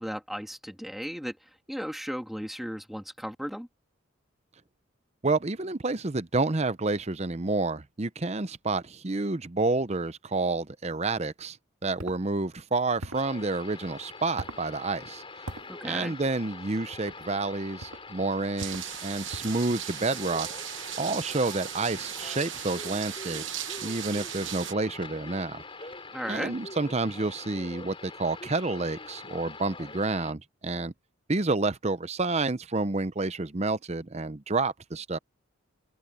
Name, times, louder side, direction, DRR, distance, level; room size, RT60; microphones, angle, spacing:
voice 1, 0.0-3.7 15.7-16.1 26.1-26.6, equal, ahead, 2.7 m, -36 dB
voice 2, 5.2-11.6 11.8-15.2 15.8-20.5 21.0-25.9 26.3-30.9 31.3-35.2, right 3 dB, 30° right, 0.7 m, -29 dB
sound 1, 12.0-12.2 13.0-13.3 14.4-14.7 15.5-15.7 16.9-17.2 17.8-18.1 18.6-18.9 19.3-19.6, right 1 dB, 90° right, 2.0 m, -40 dB
sound 2, 13.1-30.3, left 3 dB, 25° left, 5.9 m, -44 dB
sound 3, 18.6-24.7, right 11 dB, 60° right, 1.2 m, -37 dB
open air
head